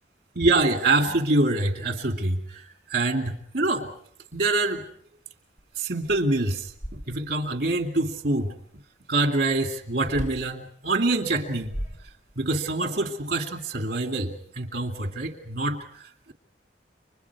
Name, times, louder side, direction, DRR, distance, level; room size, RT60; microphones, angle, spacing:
voice 1, 0.4-3.9 4.3-4.8 5.8-8.5 9.1-11.7 12.4-16.3, right 2 dB, 55° right, 5 dB, 2.4 m, -25 dB
sound 1, 5.6-5.7 6.0-7.5 10.1-10.5 11.4-12.6, equal, 40° left, 2.8 m, -37 dB
30.0 x 25.0 x 4.8 m, 0.62 s
head